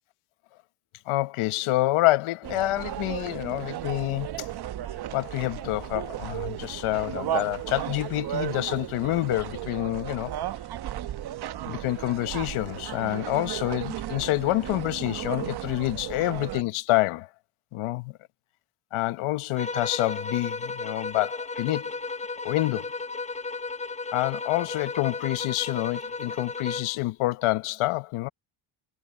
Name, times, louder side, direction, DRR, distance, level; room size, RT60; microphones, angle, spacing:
voice 1, 1.1-4.5 5.1-10.3 11.7-17.3 17.7-18.1 18.9-21.9 22.4-22.9 24.1-28.3, left 18 dB, 90° left, 1.1 m, -27 dB
sound 1, 2.4-16.6, right 12 dB, 50° right, 0.9 m, -34 dB
sound 2, 19.6-27.0, left 3 dB, 15° left, 0.8 m, -34 dB
cardioid pair, 110°, 49 cm